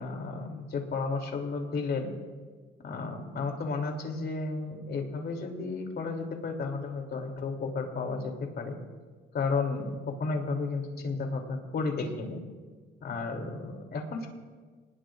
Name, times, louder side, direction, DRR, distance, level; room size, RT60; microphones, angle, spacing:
voice 1, 0.0-2.1 2.8-8.8 9.3-12.4 13.0-14.3, left 4 dB, 55° left, 2 dB, 3.2 m, -33 dB
27.5 x 20.0 x 2.6 m, 1.5 s
cardioid pair, 90°, 20 cm